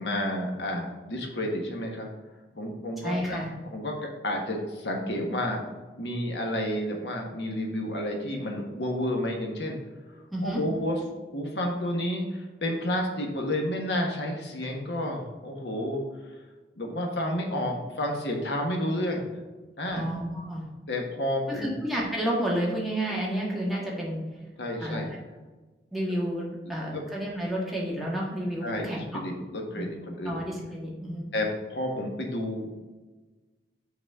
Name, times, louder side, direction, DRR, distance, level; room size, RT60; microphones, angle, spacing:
voice 1, 0.0-2.1 2.6-3.4 3.6-4.0 4.2-5.7 6.0-9.8 10.4-11.0 11.3-16.0 16.8-19.3 19.8-20.1 20.9-21.7 24.6-25.1 26.9-27.0 28.6-30.4 31.3-32.8, left 1 dB, 85° left, 1 dB, 1.4 m, -30 dB
voice 2, 3.0-3.5 10.3-10.6 19.9-20.7 21.5-24.2 24.8-25.2 25.9-29.1 29.8-29.9 30.2-31.2, right 1 dB, ahead, -5 dB, 1.5 m, -30 dB
6.0 x 4.2 x 6.0 m, 1.2 s
head